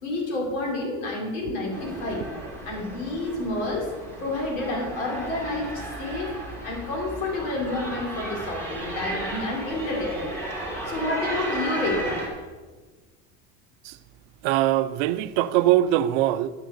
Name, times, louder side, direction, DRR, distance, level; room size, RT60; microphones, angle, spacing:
voice 1, 0.0-2.3 2.6-3.9 4.2-6.3 6.6-10.3 10.8-12.2, left 2 dB, 80° left, 3.7 m, -29 dB
sound 1, 1.7-12.3, right 1 dB, 5° left, 2.2 m, -34 dB
voice 2, 14.4-16.5, right 13 dB, 50° right, 0.5 m, -22 dB
11.5 x 6.4 x 6.5 m
cardioid pair, 170°, 35 cm